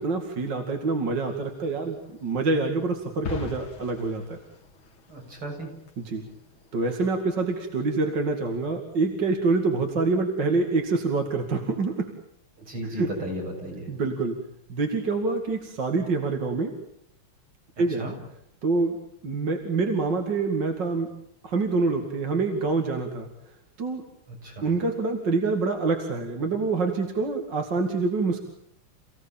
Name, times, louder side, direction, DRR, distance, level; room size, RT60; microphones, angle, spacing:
voice 1, 0.0-4.4 6.0-6.2 6.7-12.1 13.0-13.1 13.9-14.4 14.7-16.7 17.8-18.1 18.6-19.0 19.2-21.1 21.4-23.3 23.8-24.0 24.6-28.4, right 3 dB, 55° right, 3 dB, 3.0 m, -26 dB
sound 1, 1.3-7.2, left 5 dB, 70° left, 3.0 m, -43 dB
voice 2, 5.1-5.7 12.6-13.9 17.8-18.2 24.4-24.7, equal, 80° right, -1 dB, 8.9 m, -35 dB
29.0 x 17.0 x 8.9 m, 0.72 s
omnidirectional pair, 2.4 m